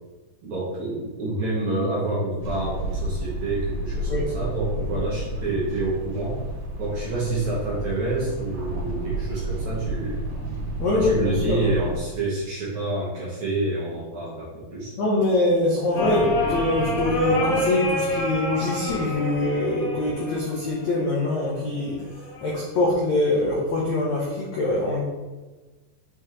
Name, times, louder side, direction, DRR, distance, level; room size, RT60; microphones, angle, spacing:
voice 1, 0.4-6.4 6.8-10.4 10.9-14.9, right 2 dB, 55° right, -7 dB, 2.2 m, -28 dB
sound 1, 2.4-12.0, right 1 dB, 75° right, 3.8 m, -31 dB
voice 2, 10.8-11.6 15.0-25.0, left 2 dB, 75° left, -5 dB, 1.6 m, -24 dB
sound 2, 15.9-21.0 22.1-22.6, left 1 dB, 55° left, 1.7 m, -27 dB
8.1 x 5.4 x 3.3 m, 1.2 s
omnidirectional pair, 5.1 m